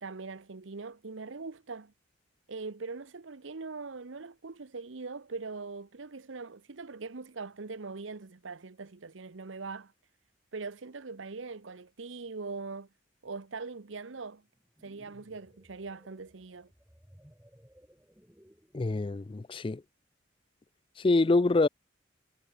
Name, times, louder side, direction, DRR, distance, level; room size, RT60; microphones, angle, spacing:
voice 1, 0.0-1.9 2.5-9.9 10.5-12.9 13.2-14.5 14.8-16.7, right 4 dB, 80° right, 0.9 m, -41 dB
sound 1, 14.5-19.3, equal, 10° right, 2.1 m, -60 dB
voice 2, 18.7-19.8 21.0-21.7, left 3 dB, 25° left, 0.4 m, -25 dB
head